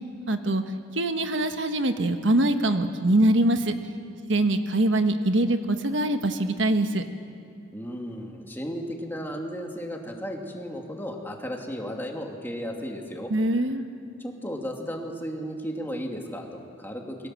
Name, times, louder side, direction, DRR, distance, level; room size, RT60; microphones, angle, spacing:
voice 1, 0.3-0.6 0.9-3.8 4.2-7.0 13.3-13.9, right 1 dB, 75° right, 7 dB, 1.3 m, -23 dB
voice 2, 7.7-13.3 14.2-17.3, equal, 10° left, 1 dB, 2.4 m, -34 dB
29.0 x 22.5 x 7.7 m, 2.4 s
head